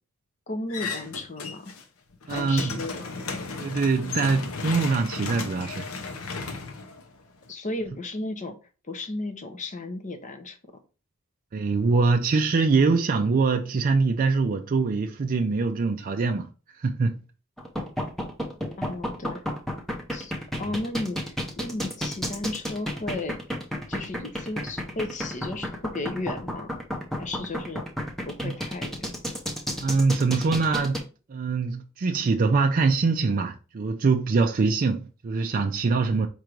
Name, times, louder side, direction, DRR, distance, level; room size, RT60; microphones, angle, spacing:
voice 1, 0.5-1.7 2.3-3.2 7.5-8.6 8.9-10.6 18.8-19.4 20.1-20.3 20.6-23.4 23.9-26.7 27.2-27.8 28.3-29.1, left 2 dB, 35° left, 0.7 m, -34 dB
sound 1, 0.7-1.8 2.1-7.5, left 4 dB, 75° left, 0.8 m, -35 dB
voice 2, 2.3-2.7 3.6-5.9 11.5-16.5 16.8-17.2 28.4-28.5 29.8-31.0 31.3-36.3, right 4 dB, 40° right, 0.4 m, -23 dB
sound 2, 17.6-31.0, equal, ahead, 0.7 m, -31 dB
4.5 x 2.6 x 4.4 m
head